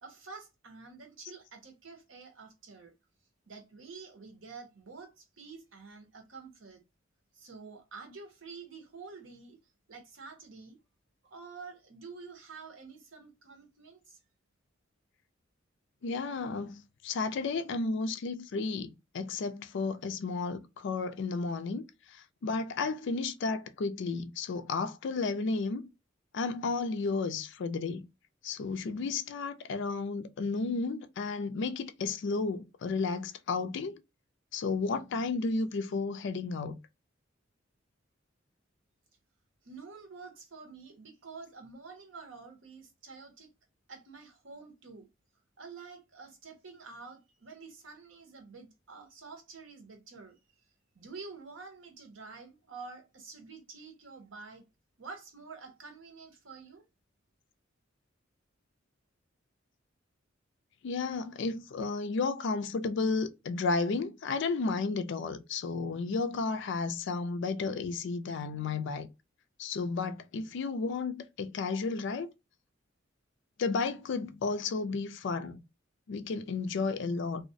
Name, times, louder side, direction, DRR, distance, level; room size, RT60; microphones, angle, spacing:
voice 1, 0.0-2.9 3.5-6.8 7.3-9.6 9.9-10.8 11.3-14.2 39.6-43.5 43.9-45.1 45.6-50.4 50.9-54.6 55.0-56.8, right 4 dB, 75° right, 0.8 m, -48 dB
voice 2, 16.0-21.9 22.4-25.9 26.3-28.0 28.4-34.0 34.5-36.8 60.8-69.1 69.6-72.3 73.6-75.6 76.1-77.4, left 4 dB, 65° left, 0.4 m, -33 dB
2.4 x 2.0 x 2.6 m
head